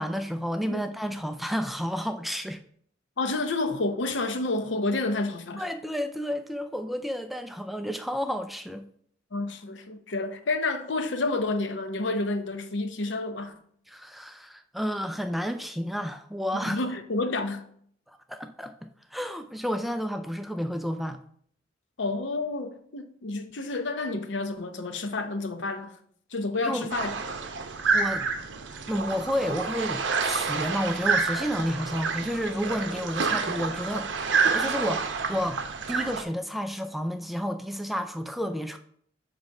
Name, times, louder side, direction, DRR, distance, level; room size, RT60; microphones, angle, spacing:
voice 1, 0.0-2.6 5.6-8.8 13.9-16.8 18.1-21.2 26.6-26.9 27.9-28.3 28.7-35.6 35.9-38.8, equal, ahead, 0.3 m, -31 dB
voice 2, 3.2-5.6 9.3-13.5 16.6-17.6 22.0-25.9 26.3-27.1, left 2 dB, 75° left, 0.7 m, -29 dB
sound 1, 26.9-36.2, right 5 dB, 75° right, 0.7 m, -28 dB
8.3 x 3.1 x 5.3 m
head